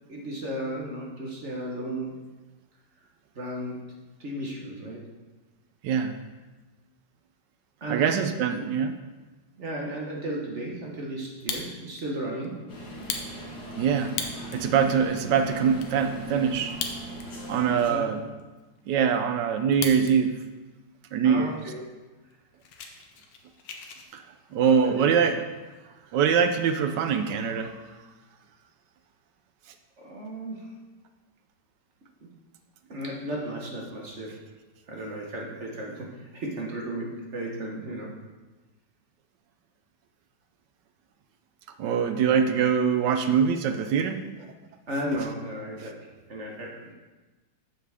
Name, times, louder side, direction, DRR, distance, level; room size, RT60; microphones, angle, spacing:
voice 1, 0.1-2.2 3.3-3.9 4.2-5.1 7.8-8.1 8.5-8.7 9.6-12.7 17.9-18.1 21.2-21.8 24.5-25.1 30.0-30.7 32.2-32.3 32.9-34.4 34.9-38.2 44.9-46.9, right 1 dB, 45° right, -2 dB, 1.3 m, -34 dB
voice 2, 7.9-8.9 13.8-14.1 14.5-16.8 17.5-18.2 18.9-20.3 21.1-21.5 24.1-24.2 24.5-25.4 26.1-27.7 41.8-44.2, right 7 dB, 75° right, 8 dB, 1.2 m, -23 dB
Fire, 11.2-12.0 12.4-12.5 12.9-14.7 15.2-15.3 15.4-15.9 16.6-17.5 17.8-17.9 18.4-20.1 20.5-20.9 21.5-21.6 21.8-22.0 22.3-24.1, left 6 dB, 80° left, 1.5 m, -36 dB
sound 1, 12.7-17.9, equal, 60° left, 2.2 m, -39 dB
7.8 x 7.0 x 3.5 m, 1.2 s
omnidirectional pair, 2.0 m